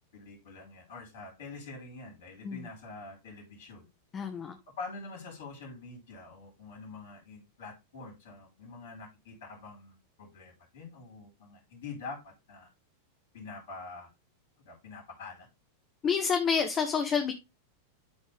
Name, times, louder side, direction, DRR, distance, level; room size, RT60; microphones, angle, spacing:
voice 1, 0.1-3.8 4.8-12.7 13.3-14.1 14.6-15.5, left 3 dB, 60° left, 4.8 m, -45 dB
voice 2, 4.1-4.6 16.0-17.3, left 6 dB, 25° left, 1.1 m, -28 dB
12.5 x 4.4 x 3.5 m
figure-of-eight pair, 90°, 0 cm